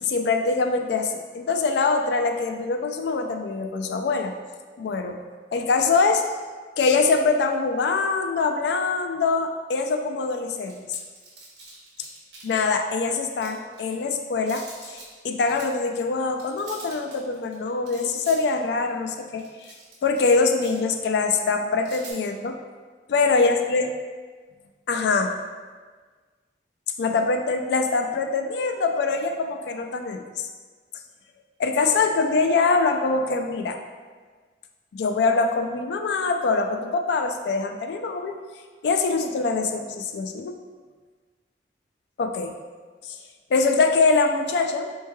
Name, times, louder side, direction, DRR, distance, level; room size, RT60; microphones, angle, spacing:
voice 1, 0.0-4.3 4.8-5.2 5.5-6.2 6.8-10.8 12.4-15.0 15.2-19.7 20.0-22.6 23.1-23.9 24.9-25.3 27.0-30.2 31.6-33.8 34.9-38.3 38.8-40.5 42.2-42.5 43.0-43.2 43.5-44.9, left 4 dB, 75° left, 5 dB, 0.3 m, -23 dB
sound 1, 10.7-12.8 13.2-14.0 14.4-15.2 15.5-15.7 16.2-20.3 20.6-21.0 21.8-22.1, right 3 dB, 75° right, 0.9 m, -44 dB
4.4 x 3.1 x 2.2 m, 1.5 s
head